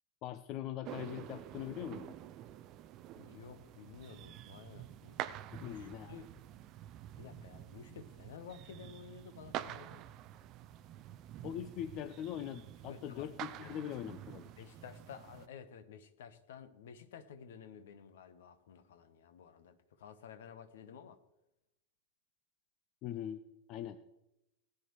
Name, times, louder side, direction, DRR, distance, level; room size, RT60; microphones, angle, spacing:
voice 1, 0.2-2.2 5.5-6.2 11.4-14.5 23.0-23.4 23.7-24.0, left 11 dB, 40° left, 12 dB, 0.6 m, -42 dB
sound 1, 0.8-15.5, right 12 dB, 35° right, 0.5 m, -48 dB
voice 2, 3.1-5.2 5.6-6.3 7.2-10.1 12.9-13.3 13.6-13.8 14.6-21.2, left 7 dB, 60° left, 11 dB, 1.1 m, -52 dB
18.5 x 9.8 x 3.1 m, 0.89 s
figure-of-eight pair, 90°, 0 cm